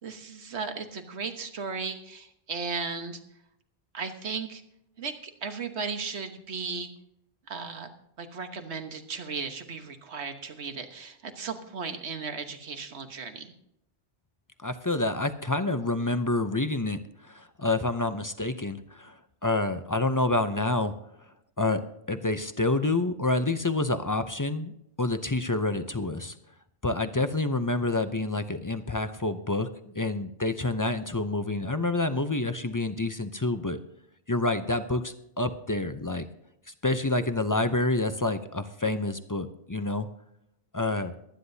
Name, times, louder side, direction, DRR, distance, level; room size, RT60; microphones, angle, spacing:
voice 1, 0.0-3.2 3.9-4.6 5.0-5.1 5.4-6.9 7.5-7.9 8.2-13.5, right 5 dB, 85° right, 7 dB, 1.5 m, -36 dB
voice 2, 14.6-20.9 21.6-21.8 22.1-26.3 26.8-29.7 30.0-33.8 34.3-36.3 36.8-40.1 40.7-41.1, left 2 dB, 25° left, 10 dB, 0.5 m, -28 dB
23.5 x 9.7 x 2.7 m, 0.79 s
omnidirectional pair, 1.1 m